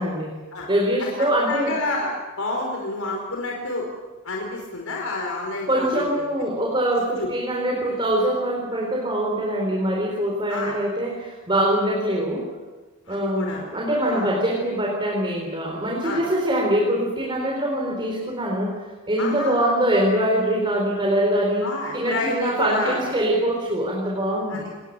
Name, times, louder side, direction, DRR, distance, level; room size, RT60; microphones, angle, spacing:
voice 1, 0.0-0.3 0.7-1.7 5.7-12.5 13.1-21.7 21.9-24.6, right 1 dB, 25° right, -1 dB, 4.2 m, -23 dB
voice 2, 1.0-2.1 2.4-3.8 4.2-6.2 7.2-7.3 10.5-10.8 13.1-13.7 14.0-14.3 16.0-16.2 19.2-19.6 21.6-23.0 24.5-24.6, left 2 dB, 85° left, 0 dB, 4.7 m, -29 dB
27.5 x 21.0 x 6.8 m, 1.3 s
head